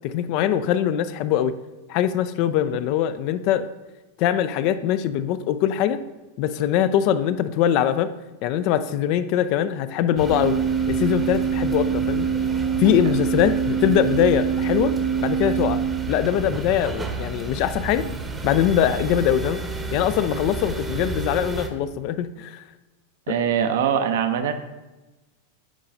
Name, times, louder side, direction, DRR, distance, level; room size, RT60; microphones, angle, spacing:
voice 1, 0.0-1.6 1.9-3.7 4.2-6.0 6.4-8.1 8.4-10.6 10.9-12.3 12.8-18.1 18.4-19.6 19.9-22.6, left 10 dB, 45° left, 13 dB, 0.3 m, -22 dB
Organ, 10.1-16.7, right 7 dB, 60° left, 1.1 m, -25 dB
sound 1, 10.2-21.7, right 3 dB, 15° right, 0.8 m, -32 dB
voice 2, 23.3-24.5, right 8 dB, 55° right, 8 dB, 0.6 m, -22 dB
11.0 x 4.7 x 2.6 m, 1.1 s
figure-of-eight pair, 90°, 0 cm